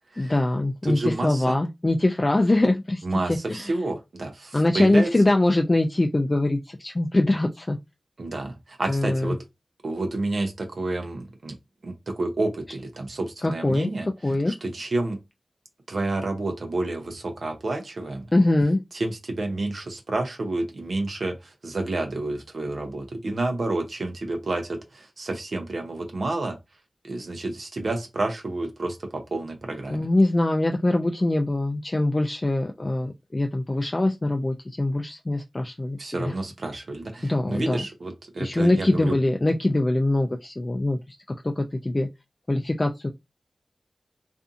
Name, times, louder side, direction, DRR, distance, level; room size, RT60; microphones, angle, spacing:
voice 1, 0.2-3.7 4.5-7.8 8.9-9.3 13.4-13.9 14.2-14.5 18.3-18.8 29.9-36.3 37.2-37.8 38.4-41.0 41.4-42.1 42.5-43.1, left 2 dB, 35° left, 0.3 m, -23 dB
voice 2, 0.8-1.6 3.0-5.1 8.2-9.4 9.8-11.6 11.8-14.1 14.5-15.2 15.9-18.3 18.9-26.6 27.0-30.1 36.0-39.2, right 2 dB, 70° right, 0.6 m, -29 dB
2.6 x 2.5 x 2.4 m
cardioid pair, 40°, 0 cm